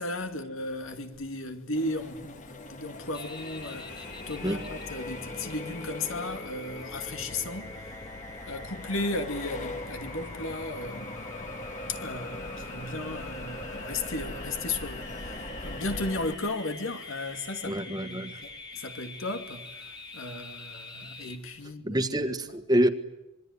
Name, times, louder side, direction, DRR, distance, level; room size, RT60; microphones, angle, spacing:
voice 1, 0.0-8.2 8.5-11.2 11.9-22.0, left 2 dB, 80° left, 2.5 m, -35 dB
Accelerating revving vroom, 1.7-16.3, left 1 dB, 35° left, 1.7 m, -41 dB
sound 1, 3.1-21.4, left 2 dB, 20° left, 2.5 m, -44 dB
voice 2, 17.7-18.4 21.8-22.9, right 1 dB, 20° right, 1.5 m, -26 dB
26.0 x 22.0 x 9.7 m
head